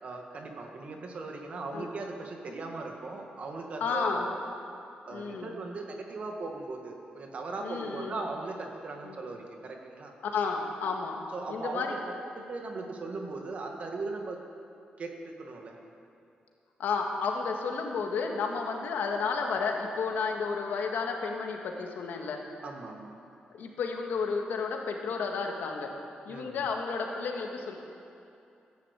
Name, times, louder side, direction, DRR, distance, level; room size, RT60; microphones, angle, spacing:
voice 1, 0.0-4.3 5.1-10.1 11.3-14.4 15.0-15.7 22.6-23.2 26.3-26.7, right 3 dB, 45° right, 2 dB, 1.8 m, -39 dB
voice 2, 3.8-4.3 5.1-5.6 7.6-8.2 9.0-9.2 10.3-11.2 11.5-12.0 16.8-22.4 23.5-25.9 26.3-27.8, left 5 dB, 85° left, 2 dB, 1.9 m, -32 dB
15.5 x 11.0 x 8.3 m, 2.6 s
wide cardioid pair, 170°, 3 cm